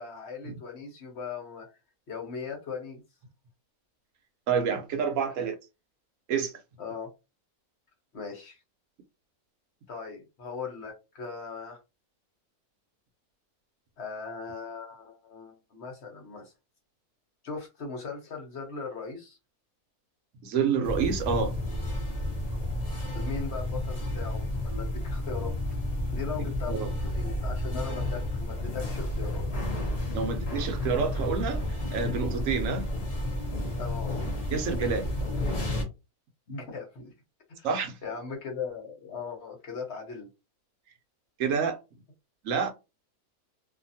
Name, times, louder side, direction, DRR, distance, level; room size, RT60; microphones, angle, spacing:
voice 1, 0.0-1.7 2.1-3.0 6.8-7.1 8.1-8.6 9.9-11.8 14.0-16.5 17.4-19.4 23.1-25.6 26.1-29.4 33.8-34.1 36.5-37.1 37.5-37.7 38.0-40.3, left 5 dB, 50° left, 1.1 m, -39 dB
voice 2, 4.5-5.5 6.3-6.5 20.4-21.5 26.4-26.9 30.1-31.6 31.9-32.9 34.5-35.0 37.6-38.0 41.4-41.8 42.4-42.7, right 6 dB, 65° right, 1.0 m, -28 dB
sound 1, 20.8-35.8, left 1 dB, 35° left, 0.7 m, -31 dB
2.7 x 2.5 x 2.7 m
omnidirectional pair, 1.5 m